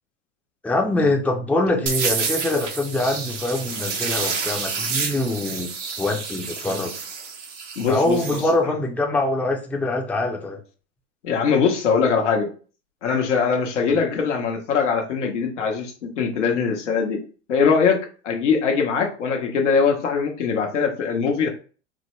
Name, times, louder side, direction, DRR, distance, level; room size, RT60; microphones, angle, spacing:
voice 1, 0.6-5.7 6.0-6.9 7.9-10.6, left 2 dB, 5° left, 2 dB, 0.5 m, -24 dB
sound 1, 1.9-8.4, right 5 dB, 85° right, 1.0 m, -29 dB
voice 2, 7.8-8.5 11.2-12.5 13.0-17.2 17.5-21.5, left 5 dB, 85° left, 2 dB, 1.0 m, -22 dB
4.4 x 2.1 x 3.1 m, 0.38 s
hypercardioid pair, 90°, 35 cm